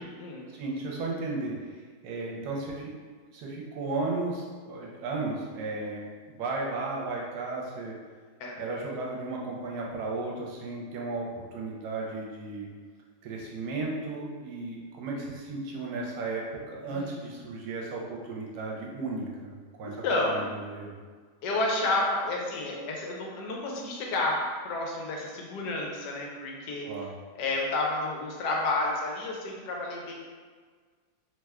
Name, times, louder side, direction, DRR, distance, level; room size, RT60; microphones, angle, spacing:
voice 1, 0.5-2.9 3.3-7.9 8.6-12.7 13.2-20.9 26.8-27.1, right 3 dB, 80° right, -2 dB, 1.1 m, -35 dB
voice 2, 16.9-17.2 20.0-20.5 21.4-24.4 24.6-26.9 27.4-30.1, left 2 dB, 85° left, -1 dB, 1.2 m, -30 dB
3.0 x 2.1 x 3.4 m, 1.6 s
omnidirectional pair, 1.7 m